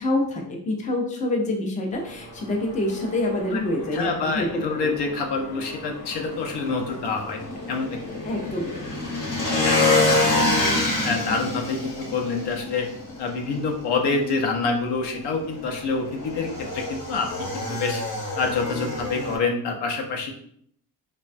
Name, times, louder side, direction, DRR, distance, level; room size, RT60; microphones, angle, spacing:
voice 1, 0.0-4.9 8.2-8.8 10.4-10.5, left 1 dB, 20° left, 2 dB, 0.4 m, -26 dB
Motorcycle / Engine, 1.9-19.4, left 2 dB, 50° left, 0.9 m, -28 dB
voice 2, 3.9-7.4 7.7-7.9 9.7-9.8 10.3-10.6 11.0-12.9 13.2-16.5 16.7-17.3 17.5-18.0 18.4-20.3, left 4 dB, 75° left, 2 dB, 0.7 m, -26 dB
3.3 x 2.1 x 2.5 m, 0.65 s
cardioid pair, 150°, 41 cm